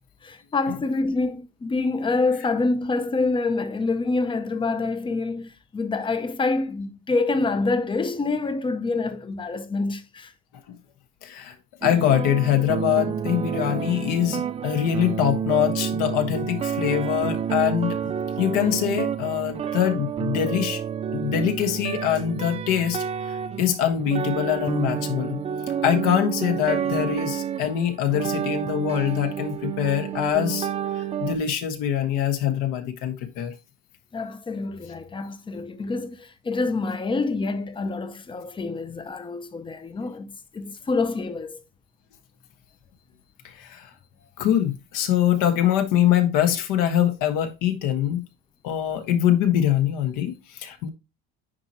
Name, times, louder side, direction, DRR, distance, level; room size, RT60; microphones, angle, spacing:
voice 1, 0.2-10.3 34.1-41.6, left 3 dB, 15° left, 0.6 m, -26 dB
voice 2, 11.2-11.5 11.8-18.1 18.4-20.8 21.1-25.4 25.8-33.5 43.4-43.9 44.4-48.2 48.6-50.9, left 10 dB, 70° left, 1.5 m, -24 dB
sound 1, 11.8-31.3, right 8 dB, 20° right, 0.3 m, -29 dB
9.5 x 4.4 x 2.9 m
cardioid pair, 145°, 33 cm